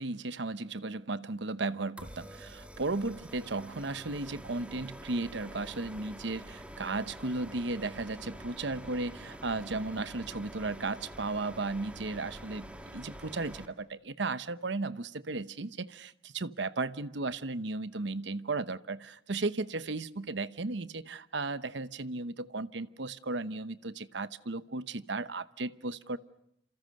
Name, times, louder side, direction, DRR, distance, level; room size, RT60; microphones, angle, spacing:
voice 1, 0.0-12.7 12.9-26.2, right 3 dB, 65° right, 14 dB, 1.0 m, -35 dB
sound 1, 2.0-13.6, equal, 5° right, 1.8 m, -47 dB
28.0 x 27.5 x 6.5 m, 0.74 s
head